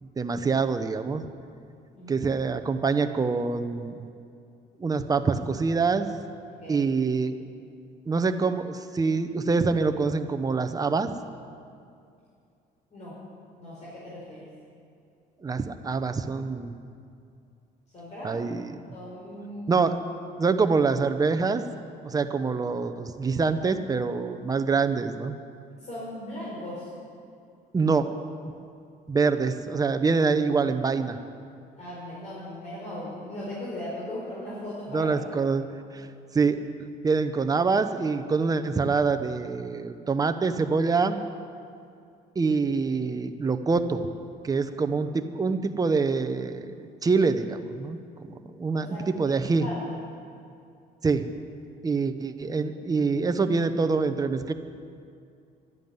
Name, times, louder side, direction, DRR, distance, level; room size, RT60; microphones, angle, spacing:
voice 1, 0.0-1.3 2.1-4.1 4.8-6.1 6.7-7.3 8.1-11.1 15.4-16.8 18.2-18.8 19.7-20.0 20.4-21.6 22.0-25.4 27.7-28.1 29.1-31.2 34.9-35.7 35.9-36.1 36.3-36.6 37.0-41.2 42.3-44.1 44.4-49.7 51.0-51.3 51.8-54.5, right 4 dB, 20° right, 8 dB, 0.9 m, -25 dB
voice 2, 2.0-2.3 6.4-6.9 12.9-13.2 13.6-14.5 17.9-18.4 18.9-19.8 25.8-26.9 31.8-35.1 48.8-49.3 49.6-50.0, left 1 dB, 45° left, -7 dB, 4.9 m, -38 dB
12.0 x 11.0 x 9.5 m, 2.4 s
cardioid pair, 110°, 17 cm